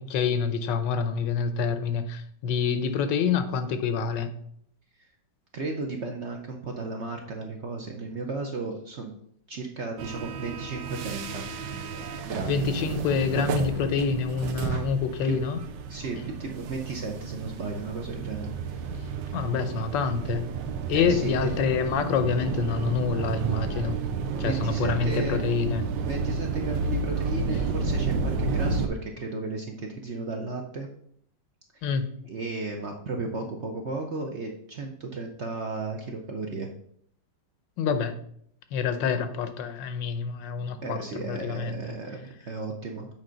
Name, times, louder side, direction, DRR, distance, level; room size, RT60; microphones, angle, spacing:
voice 1, 0.0-4.3 12.5-15.6 19.3-20.5 20.9-24.0 24.4-25.8 31.8-32.1 37.8-38.1 38.7-41.8, left 6 dB, 85° left, 10 dB, 1.4 m, -27 dB
voice 2, 5.5-9.1 9.5-11.5 12.2-12.7 15.2-15.4 15.9-19.4 20.9-21.5 24.4-25.4 26.0-30.9 31.7-31.9 32.2-36.7 40.8-43.1, right 3 dB, 60° right, 2 dB, 0.7 m, -34 dB
sound 1, 10.0-28.9, right 5 dB, 85° right, 1.3 m, -31 dB
7.5 x 4.8 x 3.9 m, 0.66 s
omnidirectional pair, 1.9 m